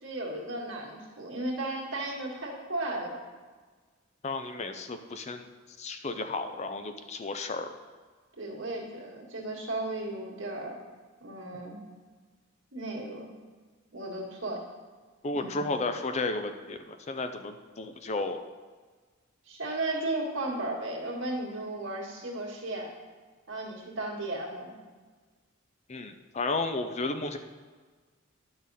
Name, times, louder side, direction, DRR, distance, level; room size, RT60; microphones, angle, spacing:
voice 1, 0.0-3.2 8.4-10.8 11.2-11.8 12.7-13.3 13.9-14.6 15.3-15.6 19.5-22.9 23.5-24.7, right 2 dB, 60° right, -2 dB, 1.9 m, -35 dB
voice 2, 4.2-5.5 5.8-7.7 15.2-18.4 25.9-27.4, left 3 dB, 35° left, 8 dB, 0.4 m, -33 dB
10.5 x 6.3 x 4.1 m, 1.4 s
head